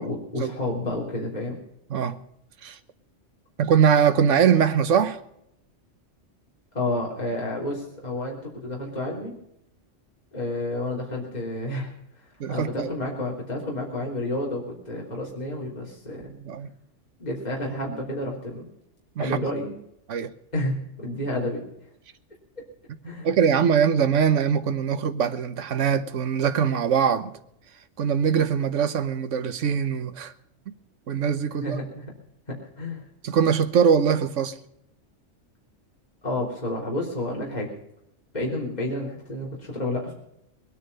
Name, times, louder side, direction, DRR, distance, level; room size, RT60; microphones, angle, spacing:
voice 1, 0.0-1.6 6.7-9.4 10.3-11.9 12.5-16.3 17.2-18.7 19.2-19.7 20.5-21.7 23.0-23.3 31.6-32.1 32.5-33.0 36.2-37.7 38.3-40.1, left 1 dB, 35° left, 3.6 m, -30 dB
voice 2, 3.6-5.2 12.4-12.9 16.3-16.7 19.2-19.5 20.1-20.3 23.2-27.4 28.0-30.3 30.7-30.8 31.1-31.8 33.2-34.6, right 7 dB, 75° right, 1.3 m, -22 dB
21.0 x 9.8 x 5.4 m
omnidirectional pair, 1.3 m